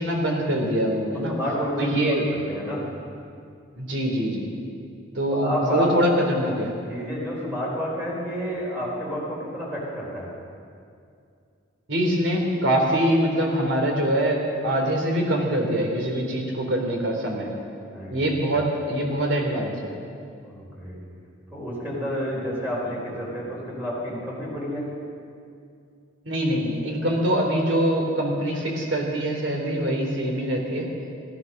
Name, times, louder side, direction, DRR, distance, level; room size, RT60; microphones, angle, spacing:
voice 1, 0.0-1.3 1.8-2.2 3.8-4.5 5.1-6.7 11.9-14.4 14.6-17.5 18.1-19.9 26.2-30.9, right 1 dB, 80° right, 0 dB, 3.0 m, -24 dB
voice 2, 1.3-2.8 5.3-5.9 6.9-10.3 17.8-18.2 20.4-21.0 21.5-24.9, equal, 10° right, -5 dB, 4.3 m, -30 dB
16.0 x 12.0 x 6.4 m, 2.4 s
head